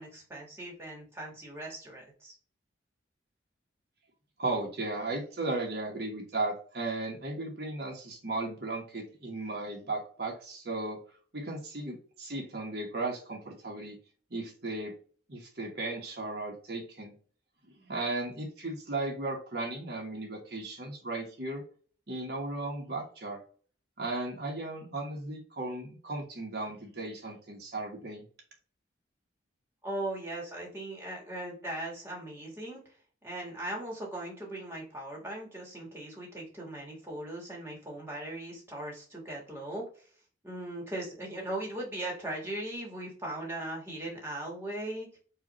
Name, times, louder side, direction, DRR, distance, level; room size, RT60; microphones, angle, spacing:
voice 1, 0.0-2.3 29.8-32.8 33.2-39.9 40.4-45.1, right 1 dB, 15° right, -2 dB, 1.3 m, -39 dB
voice 2, 4.4-11.0 11.3-14.0 14.3-14.9 15.3-17.1 17.9-21.6 22.1-23.4 24.0-28.3, right 2 dB, 55° right, -1 dB, 1.1 m, -36 dB
4.9 x 2.5 x 2.9 m, 0.41 s
head